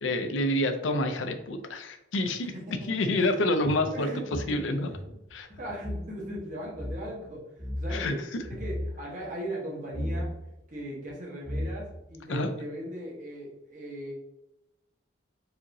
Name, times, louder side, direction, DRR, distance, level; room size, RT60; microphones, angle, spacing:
voice 1, 0.0-2.5 2.9-4.1 4.5-4.9 5.3-5.5 7.9-8.1 12.3-12.5, left 1 dB, 75° left, 7 dB, 0.5 m, -27 dB
voice 2, 2.4-2.9 3.4-3.5 3.7-4.7 5.0-5.1 5.6-7.4 7.8-10.3 10.7-14.1, equal, 40° right, -4 dB, 1.2 m, -38 dB
sound 1, 3.6-6.1 6.3-6.4 6.7-7.0 7.6-8.0 8.4-8.9 9.9-10.3 11.1-11.2 11.4-12.1, left 1 dB, 20° right, 0.9 m, -34 dB
4.8 x 3.0 x 2.7 m, 0.93 s
head